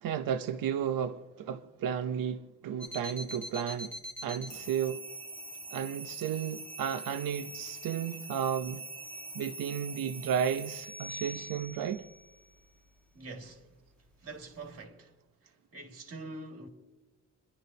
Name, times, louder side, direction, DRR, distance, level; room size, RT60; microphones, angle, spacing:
voice 1, 0.0-4.0 4.2-5.0 5.7-8.8 9.3-12.1, right 8 dB, 85° right, 0.7 m, -33 dB
sound 1, 2.8-14.8, right 1 dB, 5° left, 1.3 m, -44 dB
voice 2, 13.1-13.8 14.2-15.1 15.4-16.7, right 2 dB, 45° right, 2.0 m, -45 dB
28.5 x 11.0 x 2.7 m
wide cardioid pair, 175°, 33 cm